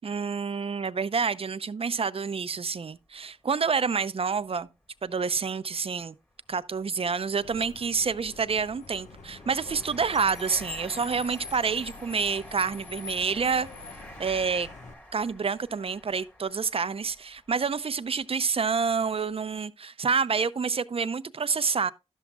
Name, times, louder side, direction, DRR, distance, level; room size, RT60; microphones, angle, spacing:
voice 1, 0.0-4.7 5.0-6.1 6.5-13.7 14.2-14.7 15.1-21.9, right 5 dB, 50° right, 0.6 m, -28 dB
sound 1, 2.5-2.7 3.2-3.3 4.5-4.6 4.9-5.1 5.8-18.5 19.0-19.2, equal, 15° left, 2.2 m, -49 dB
Car, 7.4-14.9, left 4 dB, 75° left, 1.1 m, -44 dB
12.0 x 7.2 x 2.3 m
wide cardioid pair, 70°, 12 cm